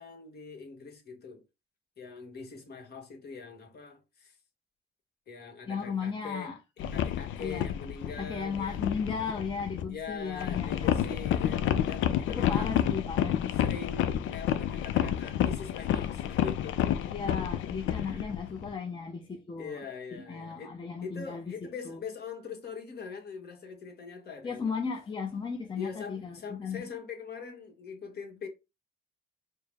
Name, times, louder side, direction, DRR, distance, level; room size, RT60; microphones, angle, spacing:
voice 1, 0.0-1.4 2.0-4.4 5.3-6.5 6.9-8.9 9.9-12.7 13.6-17.0 17.9-18.4 19.6-20.7 21.0-24.7 25.8-28.5, left 5 dB, 55° left, 1.3 m, -43 dB
voice 2, 5.7-6.6 7.4-7.7 8.2-11.0 12.3-13.7 17.1-21.4 21.8-22.0 24.4-26.9, left 5 dB, 25° left, 0.7 m, -36 dB
sound 1, 6.8-9.9 10.3-18.7, left 10 dB, 80° left, 0.5 m, -30 dB
4.5 x 2.1 x 3.4 m
cardioid pair, 90°, 20 cm